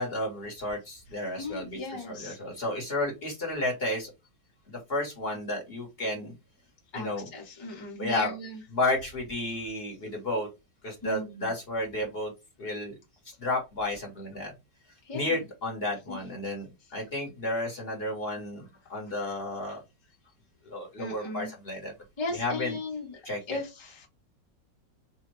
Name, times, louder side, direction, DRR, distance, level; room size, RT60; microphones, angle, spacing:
voice 1, 0.0-4.1 4.7-6.3 6.9-7.3 8.0-8.3 8.7-10.5 10.8-12.3 12.6-12.9 13.2-14.5 15.1-19.8 20.6-21.9 22.3-22.8 23.2-23.6, left 2 dB, 40° left, 0 dB, 1.0 m, -32 dB
voice 2, 1.4-2.5 6.9-8.6 11.0-11.5 15.0-15.3 16.1-16.2 18.3-18.4 21.0-21.5 22.2-24.1, left 2 dB, 25° left, -1 dB, 0.6 m, -37 dB
3.4 x 2.1 x 3.0 m, 0.24 s
omnidirectional pair, 2.0 m